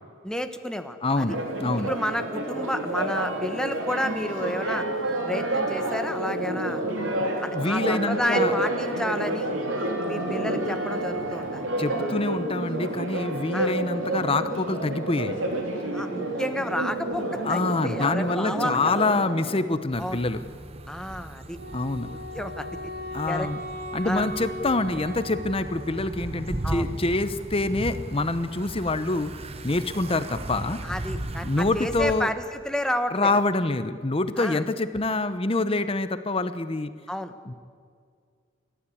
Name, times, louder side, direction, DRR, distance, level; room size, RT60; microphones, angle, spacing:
voice 1, 0.2-1.3 1.8-4.9 5.3-6.8 7.4-9.5 10.0-11.6 13.5-13.7 15.9-19.1 20.0-20.2 20.9-21.6 22.0-22.9 23.3-23.5 24.0-24.3 26.6-26.9 30.8-33.3 34.4-34.6 37.1-37.3, equal, 5° left, 7 dB, 1.2 m, -31 dB
voice 2, 1.0-1.9 7.5-8.5 11.8-15.5 17.4-20.4 21.7-22.1 23.1-23.6 23.9-29.3 29.6-30.8 31.4-32.3 33.1-36.9 37.5-37.6, left 2 dB, 30° left, 11 dB, 0.9 m, -26 dB
Church bell, 1.3-19.6, right 1 dB, 80° right, 3.6 m, -29 dB
sound 1, 19.9-32.2, right 1 dB, 30° right, 1.0 m, -37 dB
Wind instrument woodwind instrument, 21.6-26.4, equal, 55° right, 2.0 m, -38 dB
29.5 x 13.0 x 8.6 m, 2.2 s
head